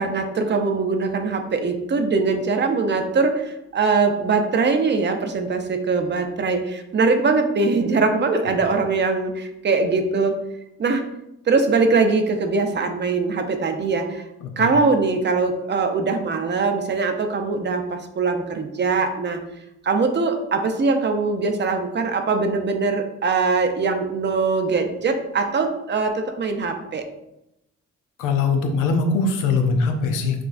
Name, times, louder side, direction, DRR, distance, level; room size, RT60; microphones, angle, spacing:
voice 1, 0.0-10.4 10.8-11.0 11.5-14.2 14.6-19.4 19.8-27.1, right 4 dB, 35° right, 6 dB, 0.6 m, -22 dB
voice 2, 14.4-14.7 28.2-30.4, left 4 dB, 90° left, 4 dB, 0.6 m, -22 dB
5.9 x 2.3 x 2.5 m, 0.88 s
cardioid pair, 90°, 30 cm